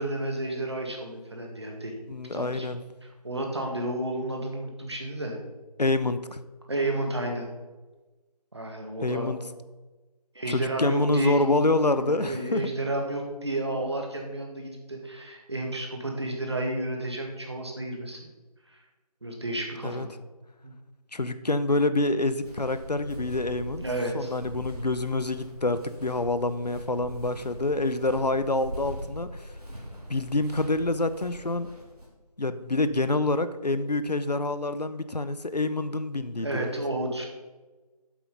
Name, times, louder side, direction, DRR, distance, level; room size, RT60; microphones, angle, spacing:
voice 1, 0.0-2.0 2.3-2.7 3.0-5.4 6.7-7.5 8.5-9.3 10.4-18.2 18.7-18.8 19.2-20.1 20.6-20.7 23.8-24.3 36.4-37.3, right 1 dB, 40° right, 1 dB, 1.8 m, -32 dB
voice 2, 2.1-2.8 5.8-6.4 9.0-9.4 10.5-12.6 19.8-20.1 21.1-23.8 24.1-29.5 30.1-31.7 32.4-36.7, left 2 dB, 80° left, 12 dB, 0.8 m, -27 dB
Walk footsteps, 22.4-32.1, equal, 70° right, 3.3 m, -41 dB
8.5 x 7.8 x 5.3 m, 1.2 s
figure-of-eight pair, 170°, 20 cm